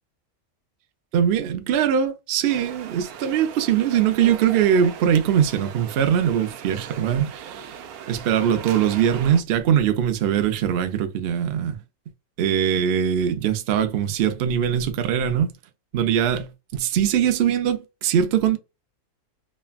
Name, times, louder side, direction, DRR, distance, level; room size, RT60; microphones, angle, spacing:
voice 1, 1.1-7.8 8.1-11.8 12.4-15.5 15.9-18.6, right 9 dB, 65° right, 0.6 m, -21 dB
sound 1, 2.5-9.4, right 8 dB, 80° right, 1.0 m, -38 dB
3.2 x 2.2 x 2.2 m
omnidirectional pair, 1.5 m